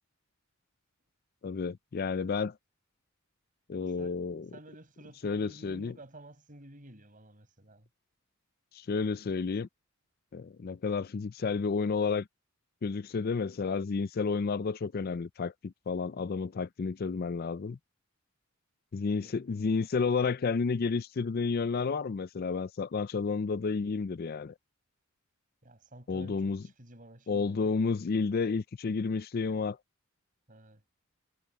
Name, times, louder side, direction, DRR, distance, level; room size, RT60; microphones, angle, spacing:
voice 1, 1.4-2.5 3.7-4.5 5.2-6.0 8.7-9.7 10.3-12.3 12.8-17.8 18.9-24.5 26.1-26.6 27.3-29.8, left 4 dB, 45° left, 0.4 m, -31 dB
voice 2, 4.5-7.9 19.2-19.4 25.6-27.9 30.5-30.8, right 1 dB, 40° right, 5.6 m, -52 dB
head